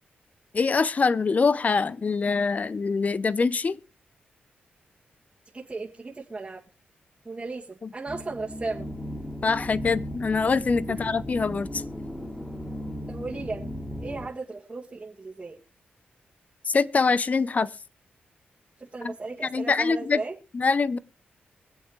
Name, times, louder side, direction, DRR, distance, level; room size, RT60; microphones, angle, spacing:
voice 1, 0.5-3.8 7.8-7.9 9.4-11.8 16.7-17.7 19.0-19.1 19.4-20.2 20.5-21.0, left 4 dB, 40° left, 0.7 m, -24 dB
voice 2, 5.5-6.6 7.2-8.9 13.1-13.7 14.0-15.6 18.8-20.4, right 3 dB, 30° right, 1.8 m, -36 dB
sound 1, 8.1-14.3, equal, 10° left, 2.6 m, -36 dB
24.0 x 8.1 x 3.2 m
cardioid pair, 80°, 4 cm